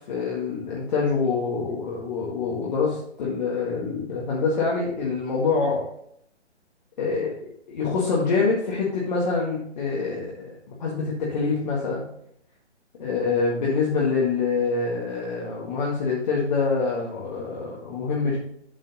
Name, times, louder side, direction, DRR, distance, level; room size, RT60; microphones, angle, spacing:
voice 1, 0.1-5.8 7.0-7.3 7.7-12.1 13.0-18.4, left 4 dB, 40° left, -5 dB, 1.9 m, -25 dB
7.8 x 6.3 x 4.2 m, 0.69 s
figure-of-eight pair, 135°, 35 cm